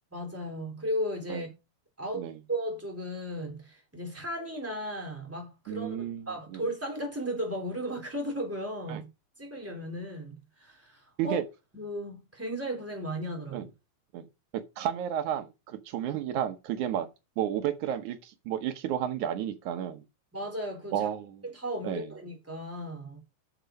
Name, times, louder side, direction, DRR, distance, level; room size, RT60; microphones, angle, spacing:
voice 1, 0.1-1.5 2.0-9.1 9.4-11.4 11.7-13.7 20.3-21.1 21.4-23.2, equal, 5° right, 3.2 m, -35 dB
voice 2, 5.7-6.2 6.5-6.6 8.9-9.0 11.2-11.4 13.5-13.7 14.1-14.3 14.8-17.1 17.4-20.0 20.9-21.4 21.8-22.1, right 10 dB, 85° right, 2.5 m, -32 dB
8.9 x 6.8 x 5.2 m
omnidirectional pair, 3.3 m